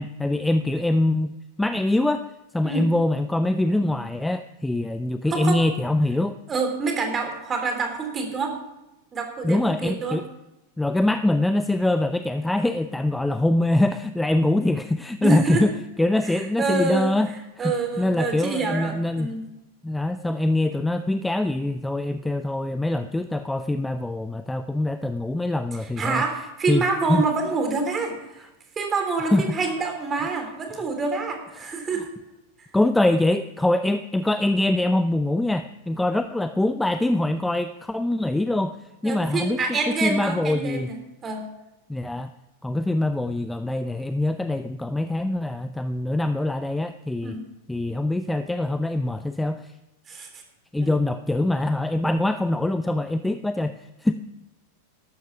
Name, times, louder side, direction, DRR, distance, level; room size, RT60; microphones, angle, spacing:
voice 1, 0.0-2.3 2.5-6.4 9.4-10.3 10.8-15.7 16.0-17.3 17.6-19.3 19.8-26.2 26.7-26.8 27.1-27.2 29.3-29.5 32.7-38.8 39.0-40.9 41.9-42.3 42.6-47.4 47.7-49.7 50.7-54.1, left 1 dB, 5° left, 10 dB, 0.5 m, -24 dB
voice 2, 6.5-8.5 9.1-10.2 15.2-15.6 16.3-17.1 17.6-19.4 26.0-28.5 28.7-32.1 32.6-32.7 39.0-41.0 41.2-41.5 47.2-47.5 50.1-50.4 50.8-50.9, right 4 dB, 20° right, 4 dB, 3.3 m, -27 dB
13.0 x 12.0 x 5.9 m, 0.95 s
figure-of-eight pair, 90°, 0 cm